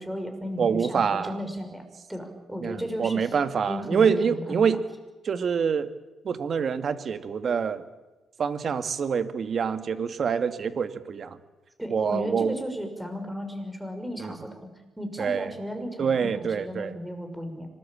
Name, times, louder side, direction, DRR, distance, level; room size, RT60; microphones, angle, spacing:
voice 1, 0.0-1.8 2.1-3.2 3.7-4.6 11.8-14.7 15.0-17.7, equal, 5° right, 6 dB, 6.1 m, -34 dB
voice 2, 0.6-1.4 2.6-4.8 5.2-5.9 6.2-7.8 8.4-11.4 11.9-12.6 14.2-14.4 15.2-15.6 16.0-16.9, right 6 dB, 50° right, 11 dB, 2.0 m, -26 dB
25.5 x 20.5 x 8.8 m, 1.1 s
cardioid pair, 90°, 0 cm